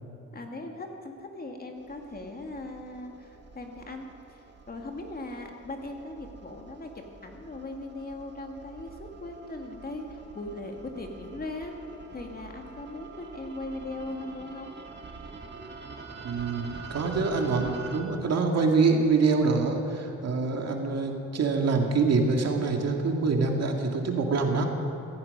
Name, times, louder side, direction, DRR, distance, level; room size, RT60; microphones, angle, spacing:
voice 1, 0.3-11.7 12.1-14.7, left 2 dB, 30° left, 3 dB, 2.1 m, -39 dB
sound 1, 1.8-18.0, right 4 dB, 35° right, 1.8 m, -46 dB
voice 2, 16.2-24.7, right 4 dB, 55° right, 2 dB, 2.1 m, -25 dB
16.0 x 15.5 x 5.4 m, 2.8 s
cardioid pair, 90°, 30 cm